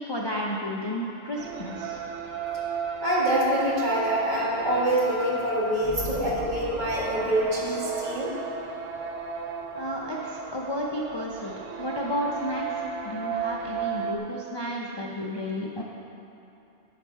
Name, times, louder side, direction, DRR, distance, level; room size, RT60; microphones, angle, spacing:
voice 1, 0.0-2.0 9.7-15.8, left 1 dB, 30° left, -3 dB, 0.5 m, -32 dB
sound 1, 1.4-14.2, right 6 dB, 65° right, 0.8 m, -34 dB
voice 2, 3.0-8.3, right 1 dB, 40° right, -6 dB, 1.8 m, -25 dB
sound 2, 5.8-8.4, left 1 dB, 80° left, 1.5 m, -39 dB
11.0 x 5.7 x 4.6 m, 3.0 s
omnidirectional pair, 1.2 m